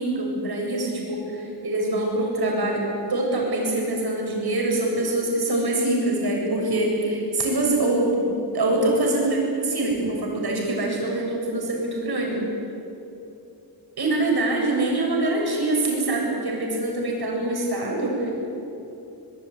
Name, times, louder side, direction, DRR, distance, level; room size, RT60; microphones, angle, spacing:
voice 1, 0.0-8.2 8.5-12.4 14.0-18.3, right 2 dB, 65° right, -1 dB, 7.8 m, -24 dB
24.0 x 21.0 x 9.6 m, 2.9 s
wide cardioid pair, 130°, 41 cm